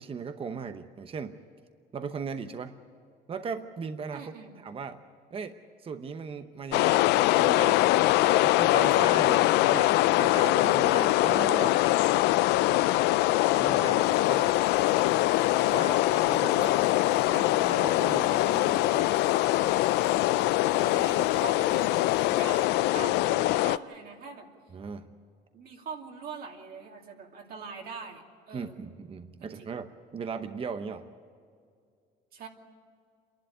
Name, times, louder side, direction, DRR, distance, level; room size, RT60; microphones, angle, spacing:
voice 1, 0.0-1.4 1.9-2.7 3.3-5.0 5.3-5.6 5.8-7.8 8.4-9.5 9.7-9.9 10.2-11.8 13.5-14.6 15.6-16.7 17.3-19.1 24.7-25.2 28.5-31.1, right 5 dB, 35° right, 9 dB, 0.9 m, -38 dB
voice 2, 4.1-4.5 9.6-10.0 16.6-17.4 20.8-24.5 25.5-28.8 29.4-29.7 32.3-32.5, right 5 dB, 60° right, 0 dB, 2.7 m, -43 dB
sound 1, 6.7-23.8, left 17 dB, 90° left, 0.4 m, -23 dB
sound 2, 14.0-22.8, left 8 dB, 70° left, 2.5 m, -48 dB
27.5 x 11.5 x 9.4 m, 2.3 s
cardioid pair, 110°, 17 cm